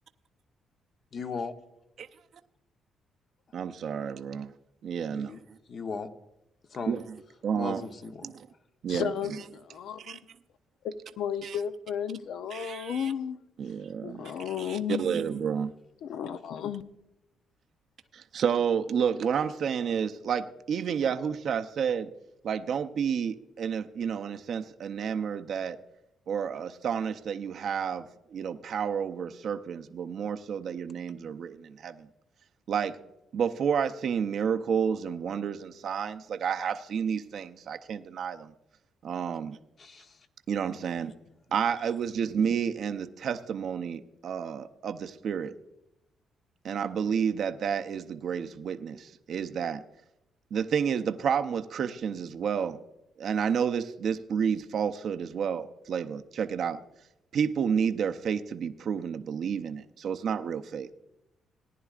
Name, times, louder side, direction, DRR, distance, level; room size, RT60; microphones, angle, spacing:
voice 1, 1.1-1.5 5.1-5.4 5.7-6.1 6.7-7.0 7.6-8.3 39.8-40.2, left 5 dB, 50° left, 1.0 m, -37 dB
voice 2, 3.5-4.5 4.8-5.4 6.9-7.0 7.4-7.8 8.2-8.5 8.8-9.1 10.0-10.2 11.4-11.6 12.5-13.1 13.6-15.7 18.1-22.1 22.4-25.8 26.3-28.1 28.3-32.1 32.7-33.0 33.3-38.5 39.0-39.6 40.5-41.1 41.5-45.5 46.6-49.8 50.5-52.8 53.2-56.8 57.3-60.9, right 7 dB, 65° right, 0.6 m, -30 dB
voice 3, 8.9-10.2 10.8-13.4 14.0-15.2 16.0-16.8, left 8 dB, 75° left, 0.6 m, -33 dB
18.0 x 10.5 x 2.4 m
cardioid pair, 90°, 0 cm